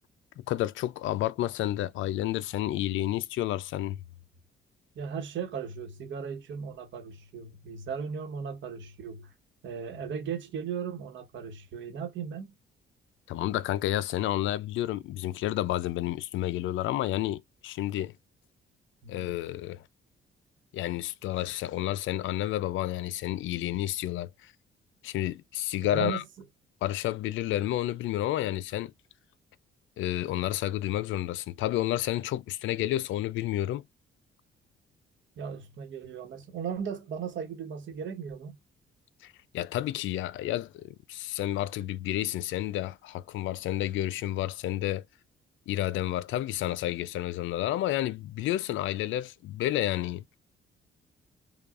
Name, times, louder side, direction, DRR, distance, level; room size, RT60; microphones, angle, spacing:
voice 1, 0.4-4.0 13.3-18.1 19.1-19.8 20.7-24.5 25.0-26.2 26.8-28.9 30.0-33.8 39.2-45.0 45.7-50.2, left 14 dB, 80° left, 0.4 m, -30 dB
voice 2, 4.9-9.3 9.6-12.5 19.0-19.3 25.8-26.2 35.4-38.6, right 7 dB, 70° right, 1.2 m, -37 dB
5.1 x 2.4 x 2.4 m
cardioid pair, 90°, 20 cm